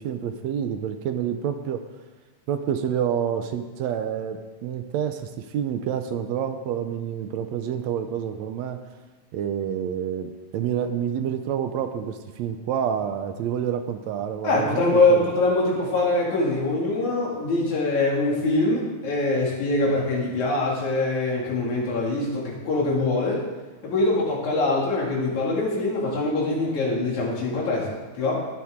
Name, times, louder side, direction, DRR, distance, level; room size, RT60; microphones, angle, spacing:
voice 1, 0.0-1.8 2.5-8.8 9.3-14.7 15.1-15.2, right 8 dB, 75° right, 8 dB, 1.8 m, -28 dB
voice 2, 14.4-23.5 23.8-28.4, left 2 dB, 75° left, -3 dB, 3.8 m, -23 dB
19.5 x 7.4 x 3.7 m, 1.3 s
omnidirectional pair, 3.4 m